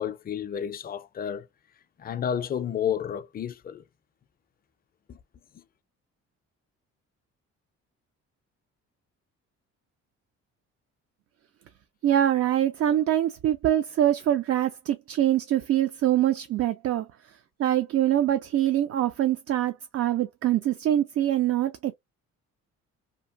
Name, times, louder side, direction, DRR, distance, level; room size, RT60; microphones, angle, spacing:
voice 1, 0.0-1.5 2.0-3.8 5.1-5.2 5.5-5.6, left 9 dB, 30° left, 0.4 m, -31 dB
voice 2, 12.0-17.1 17.6-22.0, right 12 dB, 50° right, 0.4 m, -24 dB
2.8 x 2.5 x 2.4 m
cardioid pair, 90°, 30 cm